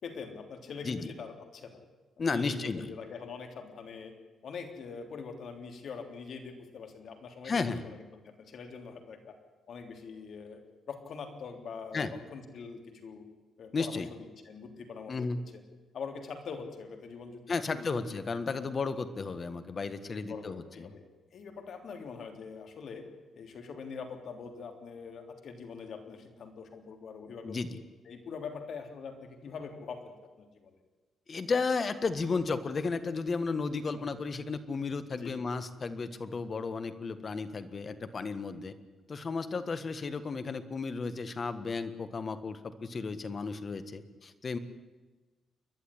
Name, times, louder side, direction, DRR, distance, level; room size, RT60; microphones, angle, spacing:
voice 1, 0.0-1.8 2.3-4.1 4.4-7.5 7.8-9.3 9.7-10.6 10.9-13.3 13.6-14.0 14.4-15.6 15.9-17.4 17.8-18.0 18.5-18.7 19.3-19.4 20.1-21.0 21.3-23.1 23.3-27.6 28.0-30.8 33.9-34.0 35.1-35.3, left 5 dB, 60° left, 5 dB, 3.3 m, -43 dB
voice 2, 2.2-2.9 7.4-7.8 11.9-12.1 13.7-14.1 15.1-15.4 17.5-20.9 27.4-27.8 31.3-38.7 39.1-44.6, left 4 dB, 35° left, 11 dB, 1.5 m, -33 dB
29.0 x 11.0 x 10.0 m, 1.3 s
cardioid pair, 120°, 0 cm